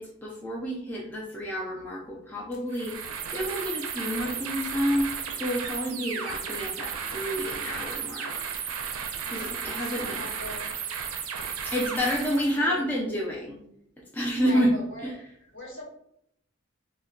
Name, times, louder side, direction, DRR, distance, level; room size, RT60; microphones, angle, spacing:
voice 1, 0.0-8.3 9.3-10.2 11.6-13.6 14.1-14.7 15.0-15.2, equal, 10° left, -5 dB, 0.3 m, -29 dB
sound 1, 2.5-2.7 3.3-3.4 4.0-4.6 5.6-5.8 6.4-6.5 7.1-7.7, left 1 dB, 85° left, 0.5 m, -55 dB
sound 2, 2.7-12.6, right 6 dB, 80° right, 0.4 m, -34 dB
voice 2, 9.3-10.7 12.3-12.9 14.4-15.2 15.5-15.8, equal, 60° left, -4 dB, 1.2 m, -42 dB
2.1 x 2.1 x 3.6 m, 0.72 s
head